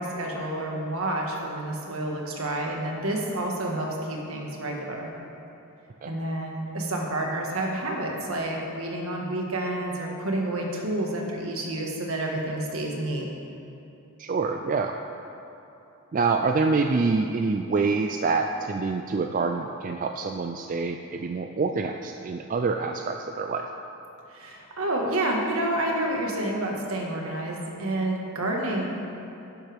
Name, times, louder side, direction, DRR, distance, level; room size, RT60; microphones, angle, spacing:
voice 1, 0.0-5.1 6.0-13.2 24.3-28.9, right 1 dB, 75° right, 0 dB, 1.6 m, -29 dB
voice 2, 14.2-14.9 16.1-23.7, right 4 dB, 35° right, 5 dB, 0.3 m, -26 dB
12.0 x 10.0 x 3.5 m, 2.9 s
head